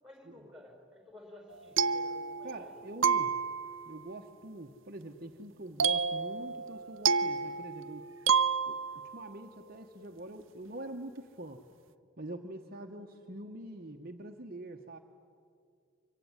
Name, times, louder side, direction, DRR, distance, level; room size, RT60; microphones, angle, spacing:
voice 1, 0.0-2.8, left 1 dB, 5° right, 2 dB, 5.5 m, -53 dB
sound 1, 1.5-2.7 3.0-3.9 5.8-9.2, right 6 dB, 70° right, 0.7 m, -30 dB
voice 2, 2.4-3.5 3.9-8.1 8.7-8.8 9.1-11.6 12.2-15.0, right 1 dB, 45° right, 3 dB, 1.2 m, -44 dB
25.5 x 23.0 x 9.8 m, 2.4 s
head